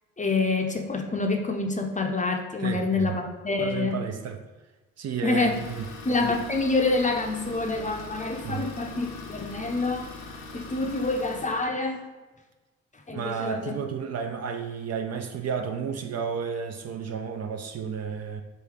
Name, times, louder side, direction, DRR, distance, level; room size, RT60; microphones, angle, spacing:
voice 1, 0.2-4.0 5.2-5.6 6.0-10.1 10.5-12.0 13.1-13.8, left 3 dB, 20° left, 3 dB, 0.6 m, -27 dB
voice 2, 2.6-3.1 3.6-4.4 5.0-5.9 8.4-8.7 13.1-18.4, right 6 dB, 40° right, 6 dB, 0.5 m, -32 dB
Idling, 5.1-11.7, left 3 dB, 70° left, 0.8 m, -42 dB
3.8 x 2.7 x 4.7 m, 1.2 s
hypercardioid pair, 40°, 39 cm